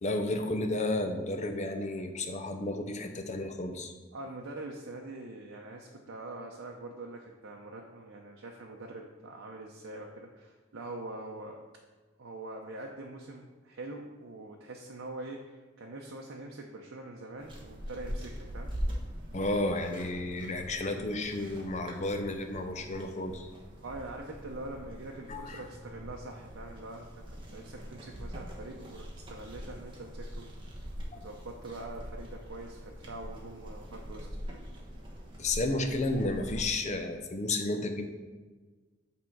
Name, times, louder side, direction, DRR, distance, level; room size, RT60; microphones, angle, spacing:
voice 1, 0.0-3.9 19.3-23.5 25.3-25.6 31.1-31.2 35.4-38.1, left 2 dB, 35° left, 5 dB, 0.7 m, -32 dB
voice 2, 4.1-11.6 12.2-18.7 20.6-20.7 23.8-30.5 31.1-34.3, right 2 dB, 90° right, 0 dB, 0.6 m, -44 dB
sound 1, 17.4-36.7, equal, 25° right, 1.2 m, -42 dB
8.6 x 3.7 x 4.5 m, 1.4 s
head